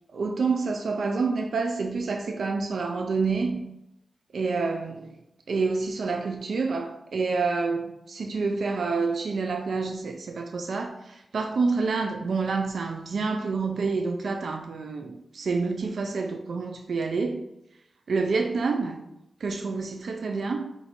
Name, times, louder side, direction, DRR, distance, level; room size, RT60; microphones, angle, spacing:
voice 1, 0.1-3.7 4.3-5.2 5.5-17.5 18.1-19.0 19.4-20.7, right 4 dB, 75° right, 0.4 m, -28 dB
4.5 x 2.6 x 4.1 m
wide cardioid pair, 85°, 0 cm